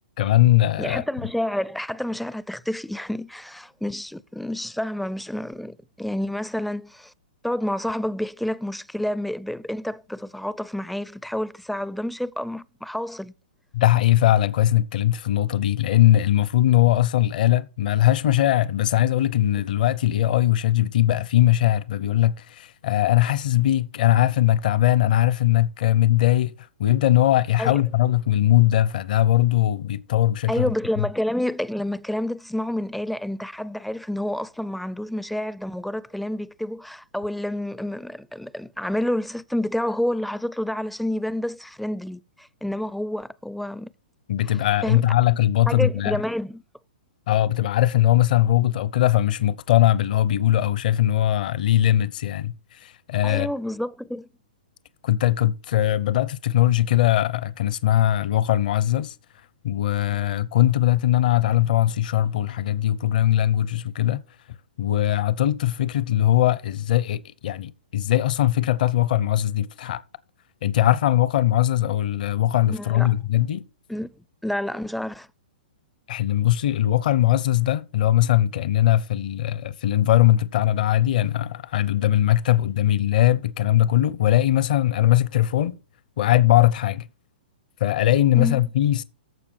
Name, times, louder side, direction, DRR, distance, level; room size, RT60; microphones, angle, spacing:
voice 1, 0.2-1.0 13.7-30.7 31.0-31.1 44.3-46.2 47.3-53.5 55.0-59.1 59.6-64.2 64.8-70.0 70.6-73.6 76.1-85.8 86.2-87.1 87.8-89.0, left 13 dB, 60° left, 0.7 m, -20 dB
voice 2, 0.8-7.1 7.4-13.3 27.6-27.8 30.5-43.9 44.8-45.0 45.7-46.6 53.2-54.3 72.7-73.1 73.9-74.1 74.4-75.3 88.3-88.6, left 1 dB, ahead, 0.4 m, -29 dB
14.5 x 4.9 x 4.5 m
hypercardioid pair, 135°, 5 cm